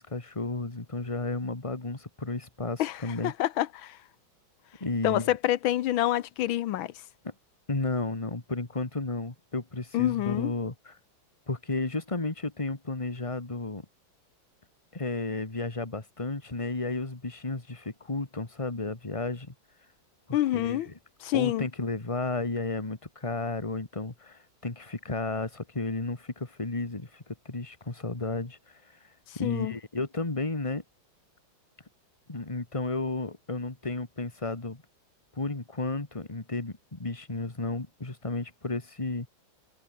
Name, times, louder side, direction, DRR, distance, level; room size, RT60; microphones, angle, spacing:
voice 1, 0.0-3.3 4.8-5.4 7.2-7.3 7.7-11.0 11.5-13.9 14.9-19.5 20.3-21.0 21.3-29.0 29.4-30.8 32.3-34.8 35.3-39.3, left 2 dB, 15° left, 2.2 m, -33 dB
voice 2, 2.8-4.0 5.0-6.9 9.9-10.5 20.3-20.9 21.2-21.7 29.4-29.7, left 14 dB, 85° left, 1.6 m, -27 dB
omnidirectional pair, 2.2 m